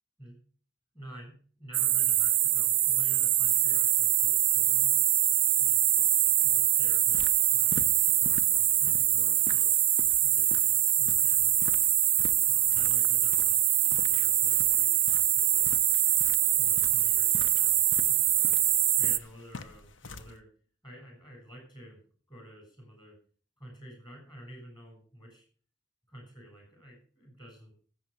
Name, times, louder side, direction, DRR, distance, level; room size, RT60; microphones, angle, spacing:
voice 1, 0.9-1.3 1.6-4.9 5.6-9.7 10.2-11.6 12.5-15.1 15.3-15.7 16.4-18.6 19.0-20.5 20.8-22.0 22.3-23.2 23.6-25.5 26.1-27.7, equal, 25° left, 1 dB, 7.1 m, -50 dB
sound 1, 1.7-19.2, right 12 dB, 30° right, 0.6 m, -24 dB
sound 2, 7.0-20.4, left 3 dB, 85° left, 0.9 m, -47 dB
14.0 x 7.4 x 6.7 m, 0.43 s
head